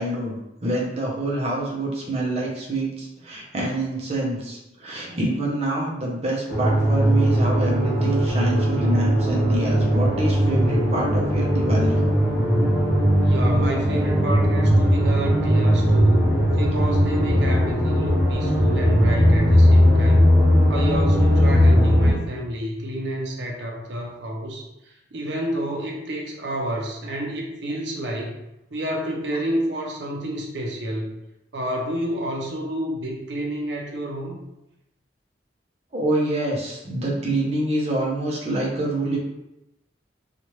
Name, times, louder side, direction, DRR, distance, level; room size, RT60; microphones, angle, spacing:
voice 1, 0.0-12.0 35.9-39.2, right 1 dB, 35° right, -3 dB, 0.7 m, -26 dB
sound 1, 6.5-22.1, equal, 20° right, 1.1 m, -18 dB
voice 2, 13.2-16.2 16.5-20.3 20.7-24.7 25.1-28.4 28.7-31.1 31.5-34.4, right 1 dB, 70° right, 0 dB, 0.7 m, -29 dB
3.0 x 2.4 x 3.0 m, 0.89 s
head